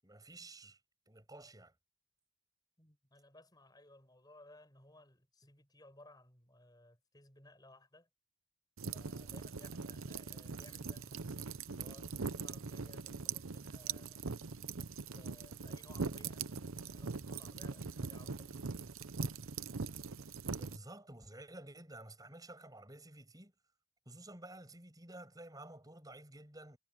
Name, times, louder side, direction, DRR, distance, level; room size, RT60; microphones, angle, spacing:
voice 1, 0.0-0.8 1.1-1.7 20.5-23.5 24.1-26.8, right 1 dB, 20° right, 7.5 m, -52 dB
voice 2, 2.8-8.1 8.9-14.3 15.1-19.0, left 1 dB, 20° left, 7.8 m, -60 dB
sound 1, 8.8-20.8, right 5 dB, 85° right, 0.8 m, -42 dB
head